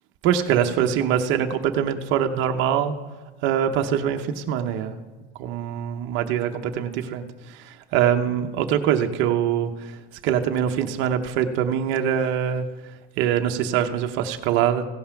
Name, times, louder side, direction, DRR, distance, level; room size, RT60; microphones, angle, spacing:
voice 1, 0.2-2.9 3.4-4.9 5.4-10.0 10.2-12.7 13.2-14.9, right 9 dB, 40° right, 5 dB, 0.8 m, -23 dB
16.0 x 5.5 x 5.8 m, 1.2 s
supercardioid pair, 155°, 30 cm